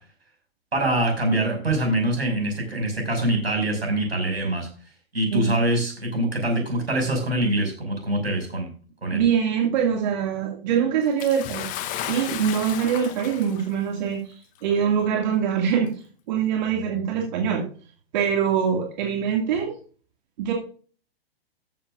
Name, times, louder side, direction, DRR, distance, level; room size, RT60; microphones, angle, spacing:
voice 1, 0.7-4.7 5.1-8.7 9.0-9.2, right 1 dB, 80° right, 3 dB, 6.0 m, -24 dB
voice 2, 5.3-5.6 9.1-11.7 12.0-15.9 16.3-17.6 18.1-19.7 20.4-20.5, right 7 dB, 45° right, 1 dB, 2.3 m, -23 dB
Bathtub (filling or washing) / Splash splatter, 11.2-13.8 14.7-14.8 15.8-15.9, left 11 dB, 25° left, 1.0 m, -34 dB
14.0 x 10.5 x 2.5 m, 0.41 s
figure-of-eight pair, 110°, 31 cm